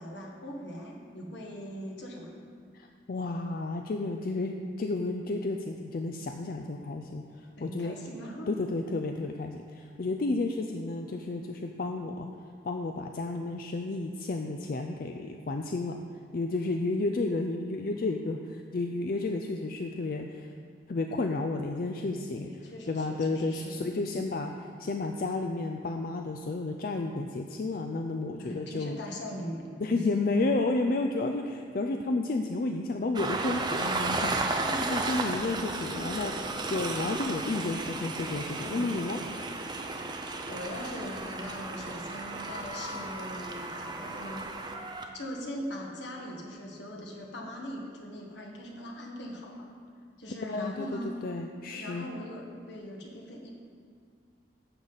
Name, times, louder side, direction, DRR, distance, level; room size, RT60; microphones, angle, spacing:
voice 1, 0.0-2.4 7.6-8.5 21.9-24.0 28.4-30.0 34.6-34.8 38.7-38.9 40.5-44.5 45.1-49.7 50.2-51.1 51.7-53.5, equal, 75° left, -1 dB, 1.5 m, -41 dB
voice 2, 2.7-7.9 8.5-12.3 12.6-16.0 16.3-20.5 20.9-22.5 22.9-29.0 29.8-39.2 50.5-50.9 51.2-52.1, left 2 dB, 50° left, 4 dB, 0.4 m, -32 dB
Train, 33.1-45.1, right 3 dB, 25° right, 0.6 m, -34 dB
11.0 x 7.2 x 4.0 m, 2.1 s
head